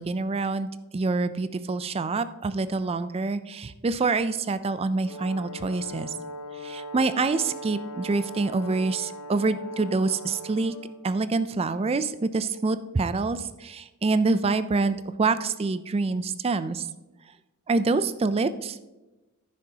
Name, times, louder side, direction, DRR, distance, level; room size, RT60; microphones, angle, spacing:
voice 1, 0.0-6.1 6.6-10.7 11.0-16.9 17.7-18.8, right 3 dB, 25° right, 13 dB, 0.3 m, -26 dB
Brass instrument, 5.0-11.0, equal, 75° left, 1.0 m, -39 dB
11.0 x 9.7 x 2.8 m, 1.1 s
head